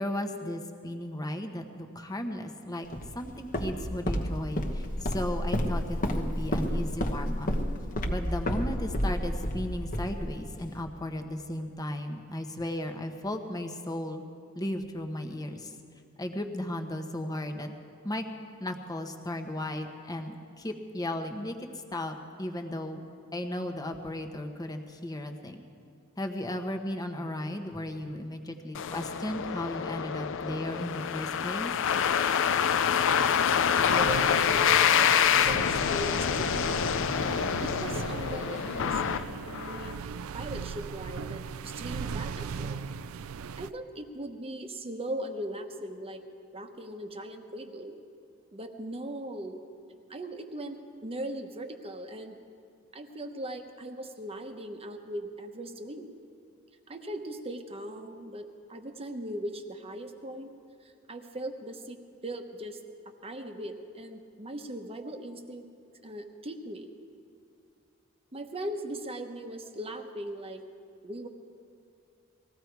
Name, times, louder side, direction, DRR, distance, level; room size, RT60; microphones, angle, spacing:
voice 1, 0.0-2.9 3.1-7.5 8.1-14.2 14.5-15.7 16.2-17.7 18.0-18.3 18.6-21.6 21.9-23.0 23.3-25.6 26.2-31.7, left 1 dB, 20° left, 5 dB, 1.0 m, -35 dB
Walk footsteps, 2.9-10.8, equal, 40° left, 1.1 m, -31 dB
sound 1, 28.7-39.9, left 8 dB, 60° left, 0.5 m, -26 dB
sound 2, 33.8-43.7, right 6 dB, 70° right, 0.4 m, -38 dB
voice 2, 33.9-39.0 39.4-40.0 40.3-42.8 43.6-46.2 46.5-48.0 48.5-49.6 50.1-52.4 52.9-56.1 56.9-58.4 58.7-60.5 60.8-62.0 62.2-62.8 63.2-65.7 66.0-66.9 68.3-70.7 71.0-71.3, right 1 dB, 30° right, 5 dB, 1.1 m, -39 dB
20.0 x 15.5 x 4.7 m, 2.6 s
head